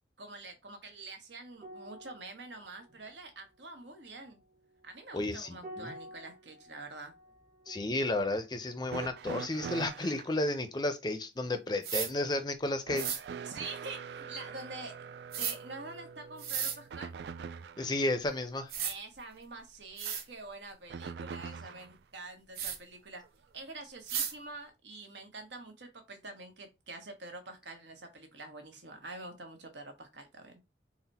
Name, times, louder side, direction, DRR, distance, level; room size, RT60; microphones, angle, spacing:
voice 1, 0.2-4.4 4.8-7.1 13.4-14.9 15.4-17.1 18.8-23.2 23.5-30.5, right 3 dB, 90° right, 1.1 m, -46 dB
sound 1, 1.5-10.3 10.6-10.8, right 1 dB, 40° right, 1.1 m, -53 dB
voice 2, 5.1-5.9 7.7-13.1 17.8-18.7, left 2 dB, 25° left, 0.5 m, -32 dB
sound 2, 8.9-10.3 12.9-18.0 20.9-22.0 23.2-23.3 24.3-24.4, right 6 dB, 70° right, 0.3 m, -43 dB
sound 3, 11.8-12.1 13.0-13.2 15.3-15.6 16.4-16.8 18.2-18.3 18.7-18.9 19.6-19.7 20.0-20.2 22.6-22.8 24.1-24.3, right 8 dB, 55° right, 0.7 m, -34 dB
4.0 x 2.1 x 4.0 m
head